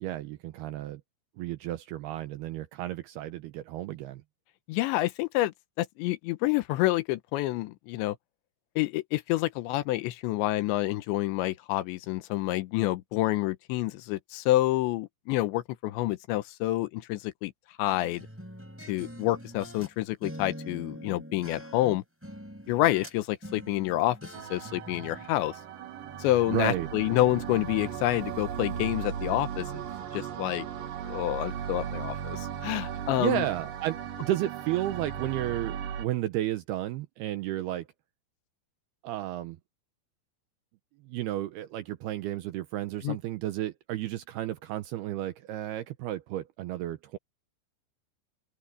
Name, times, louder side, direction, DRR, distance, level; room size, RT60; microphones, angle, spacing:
voice 1, 0.0-1.0 1.4-4.2 26.5-26.9 32.9-37.9 39.0-39.6 41.0-47.2, right 14 dB, 80° right, 2.4 m, -32 dB
voice 2, 4.7-8.2 8.8-17.5 17.8-18.3 18.9-22.0 22.7-24.2 24.5-25.6 26.2-29.7 30.1-30.7 31.0-33.5 43.0-43.2, left 16 dB, 85° left, 3.1 m, -28 dB
sound 1, 17.9-19.9 20.2-23.2 23.4-25.3, equal, 5° right, 6.3 m, -44 dB
sound 2, 24.3-36.1, right 8 dB, 55° right, 2.9 m, -37 dB
open air
omnidirectional pair, 5.3 m